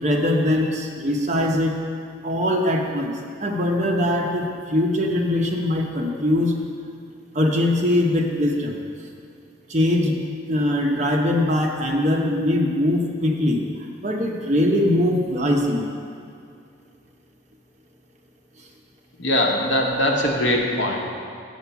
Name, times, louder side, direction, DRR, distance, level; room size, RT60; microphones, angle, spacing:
voice 1, 0.0-1.8 2.2-3.1 3.4-6.5 7.3-8.8 9.7-10.2 10.5-13.6 14.0-15.9, left 1 dB, 35° right, 1 dB, 0.8 m, -21 dB
voice 2, 19.2-21.1, left 1 dB, 70° left, 0 dB, 1.1 m, -21 dB
7.0 x 6.3 x 6.9 m, 2.4 s
head